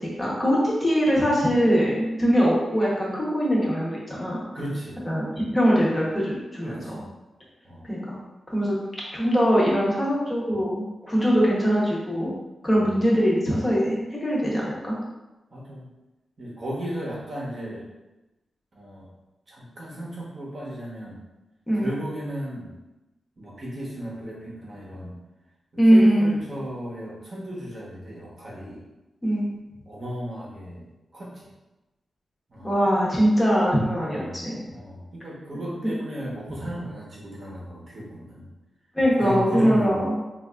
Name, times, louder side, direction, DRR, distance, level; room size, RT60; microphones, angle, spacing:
voice 1, 0.0-4.4 5.0-5.2 5.5-7.0 7.9-8.2 8.5-8.8 9.1-12.3 12.6-15.0 21.7-21.9 25.8-26.3 29.2-29.4 32.6-34.6 38.9-40.1, equal, 15° left, -5 dB, 0.8 m, -22 dB
voice 2, 4.5-5.0 6.6-7.1 7.6-7.9 12.7-12.9 15.5-15.9 16.4-17.9 18.7-19.1 19.5-21.2 21.8-22.7 23.4-25.1 25.8-28.8 29.8-30.9 31.1-31.5 32.5-32.8 34.0-38.5 39.2-40.0, equal, 35° right, -5 dB, 0.8 m, -35 dB
3.9 x 2.4 x 2.3 m, 1.0 s
wide cardioid pair, 160°, 0 cm